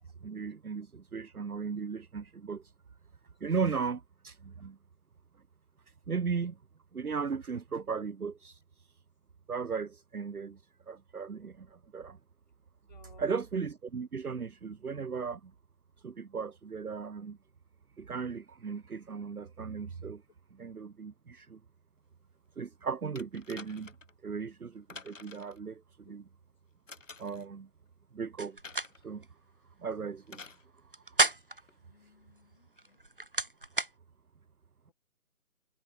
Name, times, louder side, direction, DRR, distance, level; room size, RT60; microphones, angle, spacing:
voice 1, 0.2-2.6 3.4-4.8 6.1-6.6 6.9-8.6 9.5-10.6 10.9-12.2 13.2-15.5 16.0-17.4 18.0-20.2 20.5-21.6 22.6-23.9 24.2-26.2 27.2-27.7 28.1-28.6 29.0-29.2 29.8-30.4, right 5 dB, 65° right, 1.2 m, -36 dB
voice 2, 12.9-13.2 31.8-33.0 34.9-35.0, left 6 dB, 30° left, 6.9 m, -61 dB
sound 1, 23.2-24.1 24.9-25.6 26.9-27.5 28.6-29.0 30.3-30.6 31.7-31.8, left 4 dB, 50° left, 3.9 m, -49 dB
sound 2, 28.4-28.9 29.2-29.3 30.8-31.7 32.8-33.9, right 2 dB, 35° right, 0.8 m, -30 dB
figure-of-eight pair, 175°, 47 cm